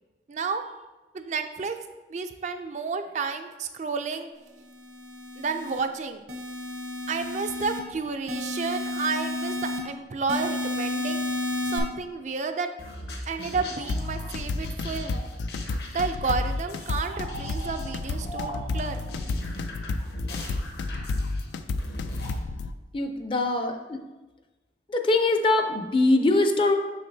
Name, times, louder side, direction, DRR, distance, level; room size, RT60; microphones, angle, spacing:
voice 1, 0.3-0.6 1.1-1.7 2.1-4.3 5.4-6.2 7.1-11.2 11.7-12.7 13.3-15.3 15.9-19.0, right 4 dB, 40° right, 7 dB, 0.3 m, -31 dB
sound 1, 4.7-5.8 6.3-7.8 8.3-9.8 10.3-11.8, left 1 dB, 70° right, 0.9 m, -31 dB
sound 2, 12.8-22.4, left 1 dB, 65° left, 1.0 m, -40 dB
sound 3, 13.9-22.7, left 3 dB, 85° left, 0.4 m, -31 dB
voice 2, 22.9-24.0 24.9-26.8, left 2 dB, 30° left, 6 dB, 0.5 m, -22 dB
6.5 x 6.3 x 2.7 m, 1.1 s
head